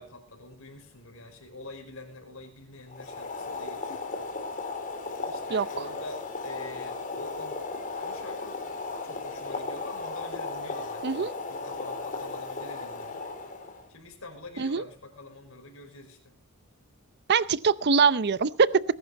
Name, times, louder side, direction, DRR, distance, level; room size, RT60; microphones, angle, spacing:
voice 1, 0.0-4.3 5.2-7.7 8.0-8.7 9.0-13.3 13.9-16.4, left 2 dB, 65° left, 3 dB, 5.2 m, -46 dB
Boiling, 2.9-13.9, left 3 dB, 35° left, 3.0 m, -36 dB
voice 2, 17.3-18.8, right 5 dB, 50° right, 18 dB, 0.6 m, -23 dB
20.5 x 11.0 x 4.1 m, 0.39 s
head